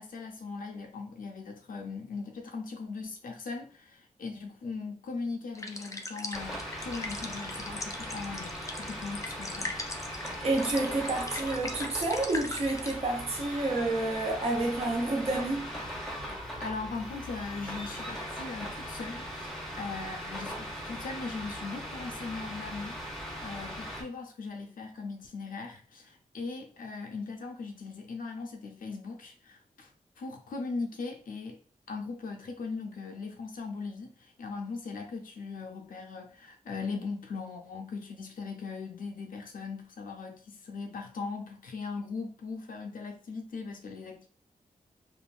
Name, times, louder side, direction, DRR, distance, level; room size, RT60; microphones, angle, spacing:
voice 1, 0.0-9.8 16.4-29.9 30.2-31.6 31.9-44.3, left 4 dB, 85° left, 0.5 m, -39 dB
sound 1, 5.5-12.9, left 2 dB, 25° left, 0.4 m, -40 dB
sound 2, 6.3-24.0, equal, 5° left, 0.7 m, -39 dB
voice 2, 10.4-15.7, right 2 dB, 45° right, 0.7 m, -29 dB
3.4 x 2.4 x 2.4 m
wide cardioid pair, 140°, 14 cm